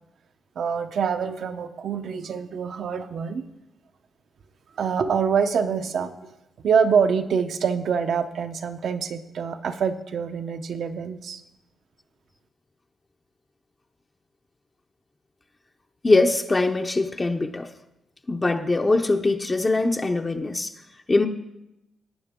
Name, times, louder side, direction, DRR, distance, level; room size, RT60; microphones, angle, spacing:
voice 1, 0.5-3.4 4.8-6.2 6.6-11.4, right 6 dB, 60° right, 9 dB, 0.9 m, -25 dB
voice 2, 16.0-17.7 18.3-20.7 21.1-21.3, left 2 dB, 20° left, 3 dB, 0.7 m, -22 dB
17.5 x 9.2 x 3.7 m, 0.90 s
cardioid pair, 115°, 0 cm